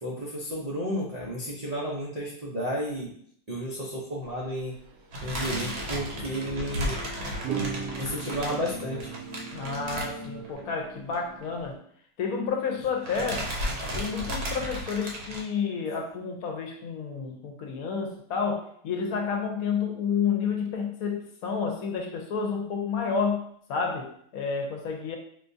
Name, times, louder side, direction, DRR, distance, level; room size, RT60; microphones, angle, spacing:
voice 1, 0.0-3.1 3.5-4.7 5.2-7.0 8.0-9.1, equal, 70° right, -4 dB, 0.3 m, -32 dB
sound 1, 4.3-4.4 4.7-4.9 5.7-6.1 7.4-11.7, right 7 dB, 90° right, 1.2 m, -38 dB
sound 2, 5.1-10.7 11.0-11.2 11.4-11.5 12.5-12.8 13.0-15.4, equal, 50° right, 0.8 m, -34 dB
sound 3, 5.4-10.5, left 1 dB, 30° left, 0.6 m, -43 dB
voice 2, 9.5-11.8 12.2-13.5 13.9-25.2, left 5 dB, 70° left, 2 dB, 1.0 m, -30 dB
4.9 x 2.3 x 2.6 m, 0.62 s
omnidirectional pair, 1.7 m